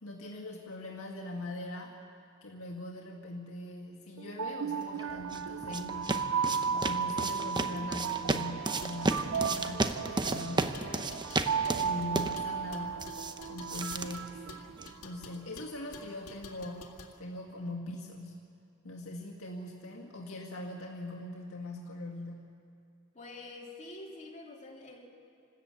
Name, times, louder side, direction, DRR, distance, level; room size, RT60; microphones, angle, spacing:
voice 1, 0.0-2.0 2.4-6.4 6.7-11.2 11.7-13.1 13.5-14.4 15.0-18.4 18.8-22.6, left 1 dB, 70° left, -1 dB, 2.1 m, -41 dB
sound 1, 4.2-15.3, right 6 dB, 65° right, 0.4 m, -35 dB
sound 2, 5.0-15.0, right 2 dB, 20° right, 0.8 m, -34 dB
sound 3, 8.7-17.2, left 4 dB, 85° left, 1.9 m, -51 dB
voice 2, 23.1-25.1, left 2 dB, 35° left, -2 dB, 3.5 m, -46 dB
28.5 x 13.5 x 8.5 m, 2.4 s
head